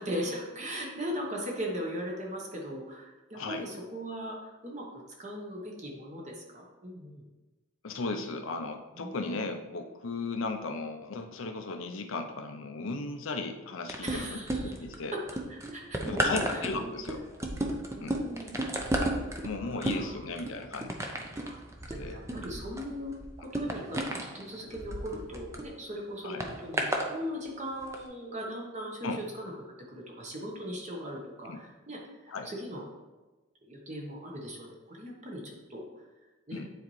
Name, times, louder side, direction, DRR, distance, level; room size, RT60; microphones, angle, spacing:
voice 1, 0.0-7.2 9.0-9.4 14.0-14.7 15.1-15.2 15.5-16.9 17.9-18.6 19.6-20.2 21.4-21.6 21.9-23.1 23.4-32.8 33.6-35.9 36.5-36.6, equal, 35° right, -1 dB, 1.1 m, -39 dB
voice 2, 3.3-3.6 7.8-15.2 16.1-17.2 18.0-18.2 19.4-21.0 22.0-22.2 26.2-26.4 29.0-29.2 31.4-31.6 32.3-32.5 36.5-36.7, left 3 dB, 75° left, 5 dB, 0.7 m, -36 dB
sound 1, 13.9-14.9 15.3-25.7 26.4-27.1 27.8-28.0, right 1 dB, 15° right, 0.6 m, -33 dB
9.5 x 4.2 x 3.2 m, 1.2 s
head